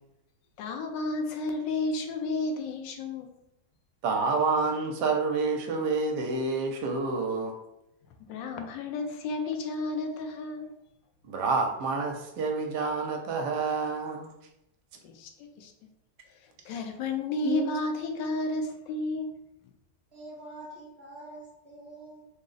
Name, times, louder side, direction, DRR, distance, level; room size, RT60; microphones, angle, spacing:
voice 1, 0.6-3.3 8.3-10.7 15.0-15.7 16.6-19.3, left 2 dB, 85° left, 4 dB, 1.3 m, -32 dB
voice 2, 4.0-7.6 11.2-14.3 17.4-17.7, right 4 dB, 75° right, 3 dB, 1.2 m, -28 dB
voice 3, 20.1-22.3, right 2 dB, 40° right, -5 dB, 1.1 m, -45 dB
3.9 x 2.0 x 3.8 m, 0.85 s
omnidirectional pair, 1.9 m